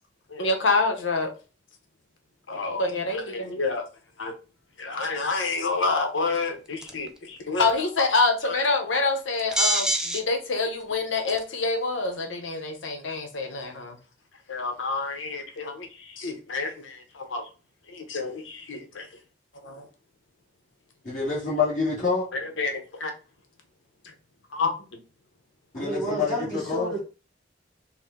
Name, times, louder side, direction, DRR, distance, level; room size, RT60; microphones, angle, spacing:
voice 1, 0.3-1.3 2.5-3.8 4.2-4.3 4.8-14.0 14.5-17.4 17.9-19.1 19.6-19.9 22.3-23.1 24.5-24.7, left 3 dB, 90° left, 0.9 m, -27 dB
sound 1, 6.8-7.1 9.4-10.2 10.8-10.9 11.3-11.6, right 2 dB, 5° right, 0.4 m, -25 dB
voice 2, 21.0-22.3 25.7-26.9, left 4 dB, 40° left, 1.7 m, -26 dB
voice 3, 25.7-27.0, right 1 dB, 20° left, 2.1 m, -31 dB
4.7 x 2.2 x 3.7 m
head